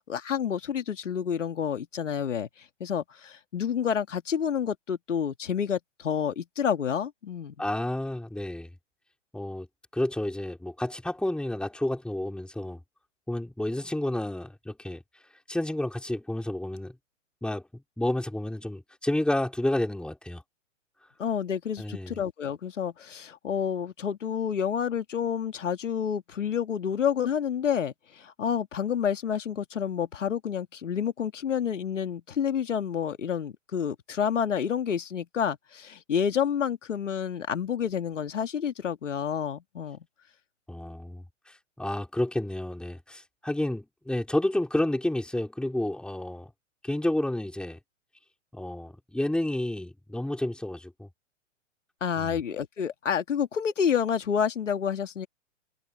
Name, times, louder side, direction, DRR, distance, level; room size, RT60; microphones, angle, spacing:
voice 1, 0.0-2.5 2.8-7.5 21.2-40.0 52.0-55.3, left 8 dB, 80° left, 2.5 m, -29 dB
voice 2, 7.6-8.7 9.3-9.7 9.9-12.8 13.3-15.0 15.5-16.9 17.4-17.7 18.0-20.4 21.8-22.2 40.7-46.5 46.8-47.8 48.5-51.1 52.2-52.4, left 1 dB, ahead, 5.7 m, -30 dB
hypercardioid pair, 120°, 37 cm